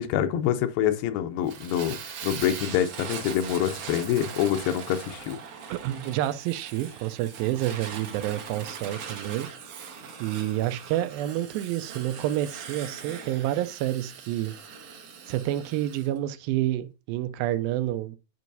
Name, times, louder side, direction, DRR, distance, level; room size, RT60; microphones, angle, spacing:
voice 1, 0.0-2.0 2.2-5.4, left 10 dB, 90° left, 2.4 m, -26 dB
Fire, 1.5-16.1, right 6 dB, 65° right, 2.0 m, -41 dB
voice 2, 5.7-9.5 10.2-14.5 15.3-18.2, right 13 dB, 85° right, 2.4 m, -29 dB
10.5 x 4.6 x 2.6 m
omnidirectional pair, 4.1 m